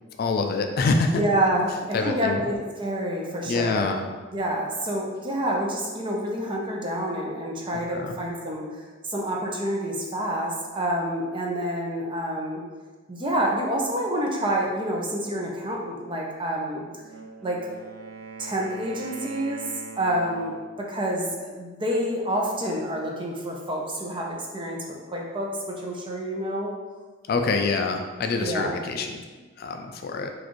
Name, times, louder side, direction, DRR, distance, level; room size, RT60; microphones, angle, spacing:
voice 1, 0.2-1.2 1.9-2.4 3.5-4.0 7.9-8.2 27.3-29.2 29.6-30.3, left 3 dB, 50° left, 5 dB, 0.3 m, -25 dB
voice 2, 1.1-3.9 4.3-8.6 9.0-12.6 13.1-16.8 17.4-17.8 18.4-19.6 20.0-24.8 25.1-26.7 28.4-28.8, right 1 dB, 25° right, -1 dB, 0.7 m, -28 dB
Wind instrument woodwind instrument, 16.9-20.7, right 4 dB, 75° right, 0.6 m, -41 dB
6.2 x 2.5 x 3.0 m, 1.4 s
head